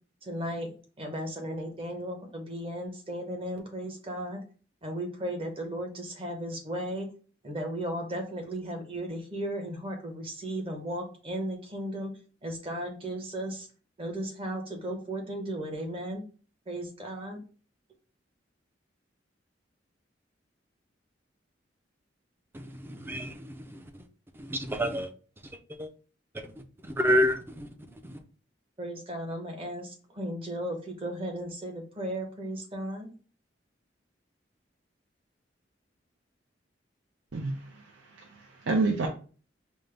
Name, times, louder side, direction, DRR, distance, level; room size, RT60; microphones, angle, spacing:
voice 1, 0.2-0.7 1.0-4.4 4.8-7.1 7.4-13.7 14.0-16.2 16.7-17.4 28.8-33.1, right 1 dB, 30° right, 0.9 m, -35 dB
voice 2, 22.5-23.8 24.3-25.1 25.7-25.9 26.3-26.5 26.8-27.7 28.0-28.2, equal, 10° right, 0.4 m, -29 dB
voice 3, 37.3-39.1, right 3 dB, 75° right, 0.5 m, -30 dB
5.3 x 2.0 x 3.2 m
head